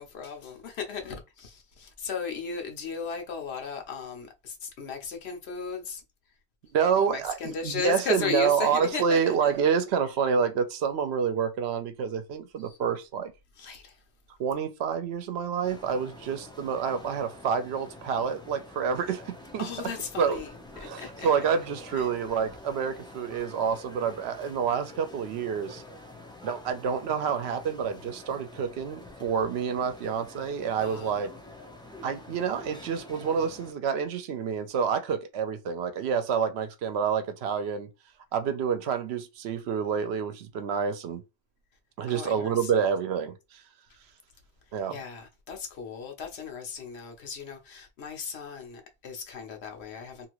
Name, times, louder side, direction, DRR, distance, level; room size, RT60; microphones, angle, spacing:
voice 1, 0.0-6.0 6.9-9.5 12.6-12.8 13.6-14.0 19.6-21.3 21.9-22.1 30.8-31.2 42.1-42.8 44.9-50.3, left 6 dB, 75° left, 1.0 m, -36 dB
voice 2, 6.7-13.3 14.4-19.7 20.2-20.4 20.7-25.8 26.4-31.3 32.0-37.9 38.3-41.2 42.0-43.4 44.7-45.0, right 6 dB, 75° right, 0.8 m, -28 dB
sound 1, 15.6-33.7, left 2 dB, 5° left, 0.4 m, -47 dB
2.8 x 2.5 x 2.9 m
omnidirectional pair, 1.1 m